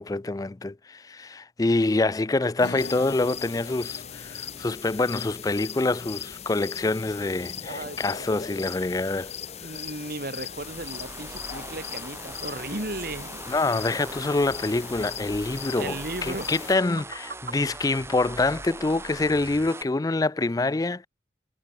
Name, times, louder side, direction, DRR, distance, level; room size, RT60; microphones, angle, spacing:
voice 1, 0.0-9.3 13.5-21.1, left 2 dB, 20° left, 0.4 m, -26 dB
sound 1, 2.6-9.2, left 2 dB, 90° left, 1.8 m, -46 dB
sound 2, 2.8-16.8, left 8 dB, 35° left, 0.8 m, -39 dB
voice 2, 7.7-8.6 9.6-13.4 15.8-16.5, right 2 dB, 55° right, 2.9 m, -36 dB
sound 3, 10.5-19.8, right 2 dB, 15° right, 1.1 m, -41 dB
head